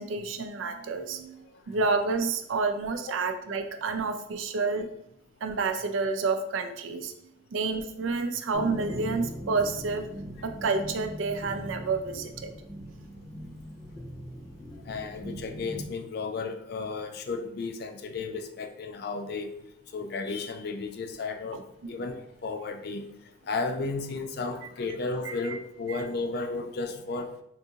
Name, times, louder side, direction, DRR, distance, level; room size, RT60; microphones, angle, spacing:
voice 1, 0.0-4.9 5.4-7.1 7.5-10.0 10.4-12.5 25.4-25.6 25.9-26.0, right 4 dB, 85° right, 6 dB, 0.4 m, -29 dB
sound 1, 8.5-15.9, equal, 20° left, 0.6 m, -40 dB
voice 2, 14.9-19.5 19.9-23.0 23.5-27.3, left 3 dB, 55° left, 7 dB, 0.4 m, -33 dB
3.6 x 2.6 x 2.7 m, 0.75 s
head